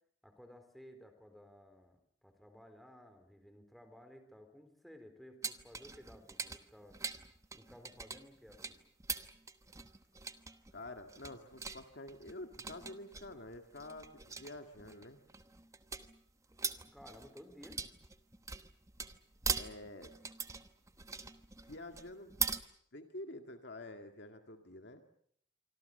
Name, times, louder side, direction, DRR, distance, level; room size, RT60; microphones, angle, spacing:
voice 1, 0.2-7.0 7.5-8.8 16.9-17.8, equal, ahead, 7 dB, 4.0 m, -56 dB
sound 1, 5.4-22.6, right 5 dB, 15° right, 1.1 m, -42 dB
voice 2, 10.7-15.2 19.6-20.1 21.6-22.3 22.7-25.0, left 2 dB, 65° left, 5 dB, 2.1 m, -48 dB
26.5 x 25.0 x 6.7 m, 0.65 s
head